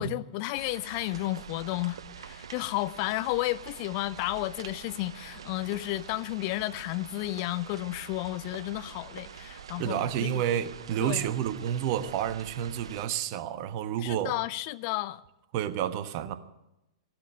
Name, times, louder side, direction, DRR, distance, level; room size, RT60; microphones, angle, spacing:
voice 1, 0.0-10.4 11.0-11.3 14.0-15.2, left 18 dB, 40° left, 0.5 m, -32 dB
sound 1, 0.5-13.1, right 8 dB, 65° right, 0.7 m, -46 dB
voice 2, 9.8-14.3 15.5-16.3, right 10 dB, 40° right, 1.2 m, -30 dB
16.0 x 12.5 x 6.6 m
figure-of-eight pair, 110°, 3 cm